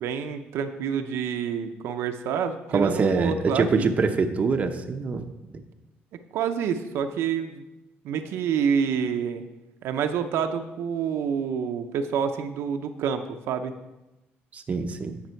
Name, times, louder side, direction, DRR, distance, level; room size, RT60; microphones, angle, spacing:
voice 1, 0.0-3.9 6.3-7.6 8.0-9.5 9.8-13.7, right 7 dB, 75° right, 6 dB, 0.7 m, -28 dB
voice 2, 2.7-5.3 14.5-15.2, right 4 dB, 30° right, 6 dB, 0.7 m, -24 dB
9.5 x 6.7 x 4.5 m, 0.98 s
cardioid pair, 135°, 4 cm